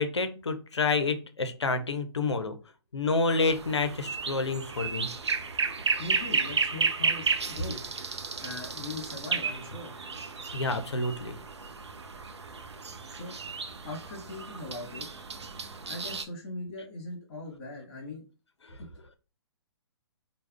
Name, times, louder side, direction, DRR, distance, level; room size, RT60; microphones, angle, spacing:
voice 1, 0.0-2.6 2.9-5.1 10.5-11.3 18.6-18.8, left 3 dB, 85° left, 8 dB, 0.5 m, -28 dB
sound 1, 3.3-16.2, right 5 dB, 85° right, 0.4 m, -33 dB
voice 2, 6.0-7.9 8.4-10.0 13.0-13.4 13.8-15.1 15.9-18.2, left 2 dB, 45° left, -2 dB, 1.0 m, -40 dB
3.3 x 2.0 x 2.3 m, 0.34 s
figure-of-eight pair, 125°, 14 cm